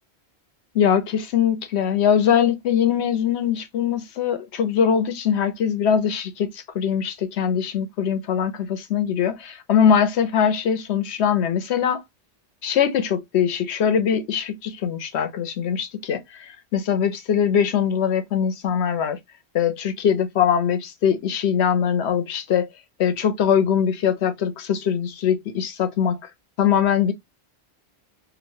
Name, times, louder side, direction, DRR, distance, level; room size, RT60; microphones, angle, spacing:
voice 1, 0.7-12.0 12.6-19.2 19.5-22.7 23.0-26.2 26.6-27.1, left 8 dB, 85° left, 1.0 m, -22 dB
3.1 x 2.6 x 2.6 m
omnidirectional pair, 1.1 m